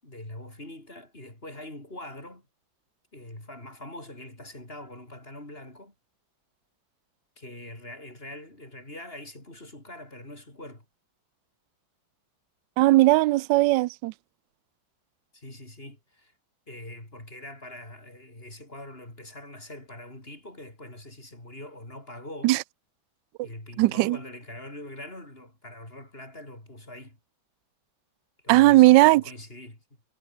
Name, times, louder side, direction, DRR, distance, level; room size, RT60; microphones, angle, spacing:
voice 1, 0.0-2.5 3.1-5.9 7.4-10.9 15.3-16.3 16.7-22.5 23.4-27.2 28.4-29.8, left 1 dB, 30° left, 6.5 m, -43 dB
voice 2, 12.8-14.1 22.4-22.6 23.4-23.5 23.8-24.2 28.5-29.2, right 18 dB, 75° right, 1.1 m, -18 dB
omnidirectional pair, 2.1 m